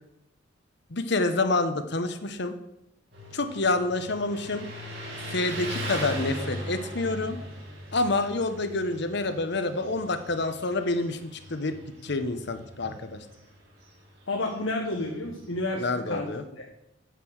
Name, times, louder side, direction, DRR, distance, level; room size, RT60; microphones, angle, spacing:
voice 1, 0.9-2.6 3.3-4.7 5.3-7.4 7.9-11.8 12.0-13.2 15.8-16.4, left 2 dB, 55° left, 9 dB, 1.0 m, -28 dB
Motorcycle, 3.1-15.7, equal, 60° right, 3.9 m, -40 dB
voice 2, 14.3-16.3 16.6-16.7, left 2 dB, 75° left, 1 dB, 1.4 m, -30 dB
9.3 x 6.8 x 7.9 m, 0.86 s
head